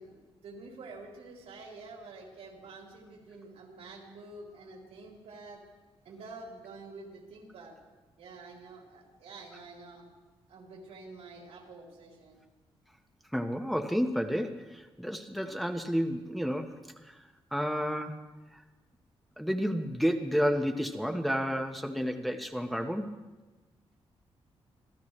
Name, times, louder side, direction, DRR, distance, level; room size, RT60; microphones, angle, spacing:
voice 1, 0.0-5.6 6.0-7.8 8.2-10.1 10.5-12.4, right 3 dB, 90° right, -2 dB, 4.3 m, -48 dB
voice 2, 13.3-16.7 17.0-17.2 17.5-18.2 19.4-23.1, equal, ahead, 3 dB, 1.4 m, -31 dB
26.0 x 16.5 x 3.4 m, 1.2 s
cardioid pair, 100°, 10 cm